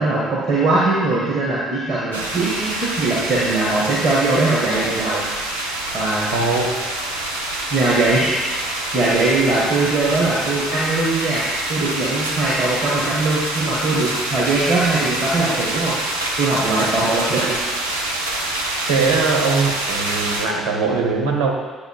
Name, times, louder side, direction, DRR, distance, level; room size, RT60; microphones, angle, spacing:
voice 1, 0.0-5.2 5.9-6.3 7.7-8.4 8.9-15.9 16.4-17.6, right 2 dB, 50° right, -6 dB, 1.6 m, -20 dB
sound 1, 2.1-20.5, right 1 dB, 80° right, 0.7 m, -26 dB
voice 2, 6.3-6.7 17.3-17.4 18.8-21.5, right 4 dB, 65° right, 0 dB, 1.1 m, -21 dB
11.0 x 8.2 x 2.4 m, 1.3 s
figure-of-eight pair, 50°, 0 cm